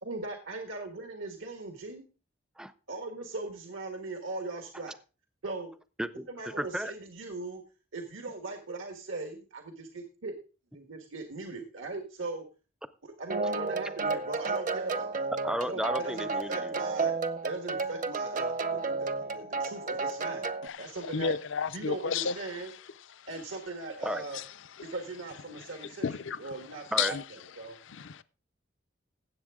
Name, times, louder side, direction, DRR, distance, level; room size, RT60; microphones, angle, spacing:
voice 1, 0.0-2.1 2.9-4.9 5.4-5.7 6.3-7.6 7.9-10.4 10.7-12.4 13.0-15.3 15.6-17.1 17.4-20.5 20.8-21.3 21.7-22.7 23.3-24.4 24.9-26.1 26.4-27.8, right 3 dB, 85° right, 1.5 m, -39 dB
voice 2, 6.0-6.9 15.4-16.7 24.0-24.2 26.9-27.1, equal, 5° right, 0.4 m, -33 dB
sound 1, 13.3-20.7, right 4 dB, 40° right, 0.7 m, -32 dB
voice 3, 20.6-22.4 24.3-24.4 26.0-26.5 27.0-27.2 27.7-28.2, left 6 dB, 75° left, 0.6 m, -32 dB
16.5 x 7.8 x 3.6 m
head